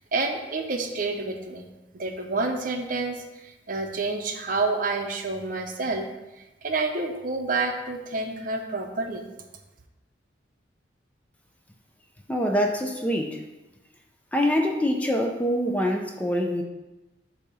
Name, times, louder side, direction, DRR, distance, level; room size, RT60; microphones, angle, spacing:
voice 1, 0.1-1.7 1.9-6.1 6.6-9.3, right 3 dB, 45° right, 4 dB, 0.7 m, -28 dB
voice 2, 12.3-13.4 14.3-16.6, equal, 10° left, 2 dB, 0.4 m, -25 dB
8.4 x 2.8 x 5.4 m, 1.0 s
head